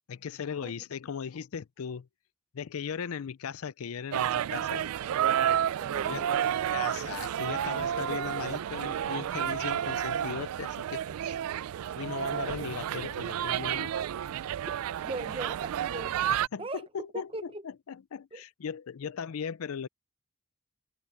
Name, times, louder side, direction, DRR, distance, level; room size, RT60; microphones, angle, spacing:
voice 1, 0.1-2.1 2.5-4.9 6.1-6.3 6.7-11.4 12.0-13.9 16.3-17.3 17.6-19.9, left 7 dB, 85° left, 0.5 m, -38 dB
sound 1, 4.1-16.5, right 10 dB, 90° right, 0.3 m, -31 dB
voice 2, 5.8-6.5 15.0-16.3 16.6-16.8 17.1-17.6 18.3-18.4, right 2 dB, 25° right, 0.9 m, -39 dB
head